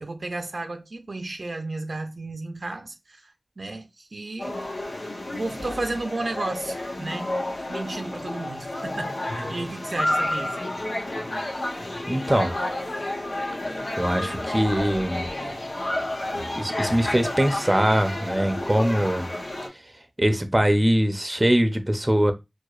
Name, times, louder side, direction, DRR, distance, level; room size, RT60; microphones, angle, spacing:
voice 1, 0.0-4.7 5.3-10.6, right 2 dB, 75° right, 0.5 m, -33 dB
sound 1, 4.4-19.7, left 1 dB, 90° left, 0.9 m, -30 dB
voice 2, 12.1-12.5 14.0-15.3 16.6-19.3 20.2-22.3, equal, 25° right, 0.6 m, -22 dB
4.6 x 2.1 x 2.4 m
wide cardioid pair, 45°, 0 cm